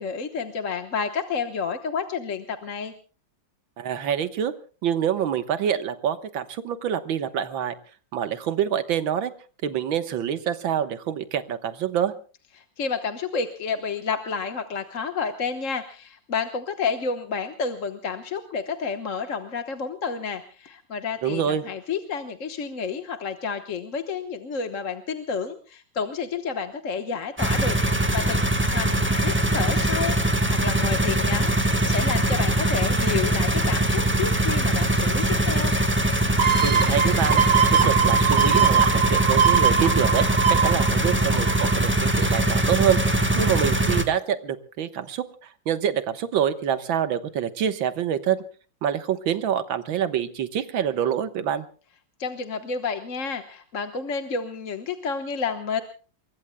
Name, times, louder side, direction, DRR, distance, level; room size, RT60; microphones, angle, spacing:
voice 1, 0.0-2.9 12.6-28.4 28.7-35.7 52.2-55.8, left 5 dB, 45° left, 7 dB, 1.4 m, -30 dB
voice 2, 3.8-4.5 4.8-7.8 8.1-9.3 9.6-12.1 21.2-21.6 36.6-37.4 37.7-43.0 43.4-48.4 48.8-51.6, right 9 dB, 90° right, 10 dB, 2.0 m, -26 dB
sound 1, 27.4-44.0, right 1 dB, 5° right, 1.3 m, -22 dB
sound 2, 36.4-41.9 42.3-42.4, right 7 dB, 65° right, 2.1 m, -22 dB
28.5 x 22.5 x 2.2 m, 0.39 s
omnidirectional pair, 2.1 m